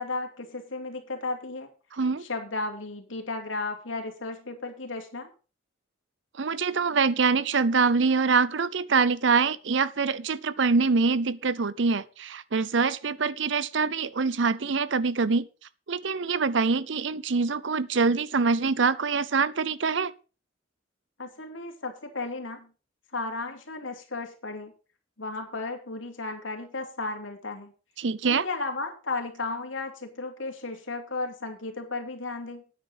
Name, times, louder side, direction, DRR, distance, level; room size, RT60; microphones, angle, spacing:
voice 1, 0.0-1.7 2.2-5.3 21.2-22.7 23.1-24.7 25.2-27.7 28.2-32.6, left 3 dB, 90° left, 2.7 m, -34 dB
voice 2, 1.9-2.3 6.4-15.5 15.9-20.1 28.0-28.4, right 4 dB, 70° right, 0.7 m, -24 dB
9.6 x 9.1 x 5.3 m
head